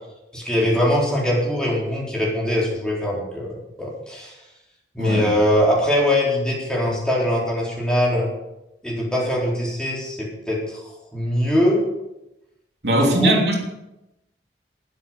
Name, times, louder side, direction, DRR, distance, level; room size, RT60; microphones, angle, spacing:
voice 1, 0.3-4.3 4.9-8.3 8.8-11.8 12.9-13.4, left 1 dB, 5° left, -5 dB, 4.0 m, -22 dB
voice 2, 5.0-5.3 12.8-13.6, right 1 dB, 75° right, 0 dB, 3.1 m, -19 dB
13.0 x 10.5 x 6.3 m, 0.92 s
head